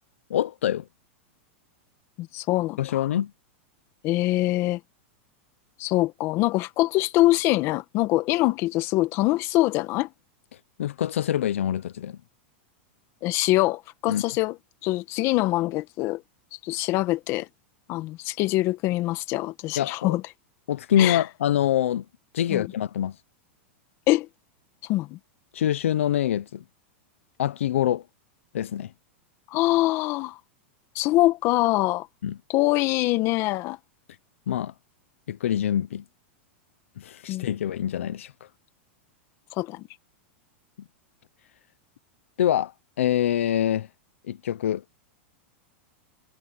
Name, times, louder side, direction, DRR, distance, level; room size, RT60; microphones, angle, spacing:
voice 1, 0.3-0.8 2.8-3.3 10.8-12.2 14.1-14.2 19.8-20.2 20.7-22.0 22.3-23.1 25.5-26.6 27.4-28.0 28.5-28.9 32.2-32.4 34.5-34.7 35.3-36.0 37.0-38.3 42.4-42.7 43.0-43.9 44.3-44.8, left 11 dB, 90° left, 0.8 m, -25 dB
voice 2, 2.2-3.1 4.0-4.8 5.8-10.1 13.2-14.6 14.8-16.2 16.6-17.5 17.9-20.2 21.0-21.2 22.5-22.7 24.1-24.3 24.9-25.2 29.5-30.4 31.0-32.1 32.5-33.8 37.3-37.5 39.6-39.9, left 18 dB, 40° left, 1.7 m, -24 dB
supercardioid pair, 145°, 7 cm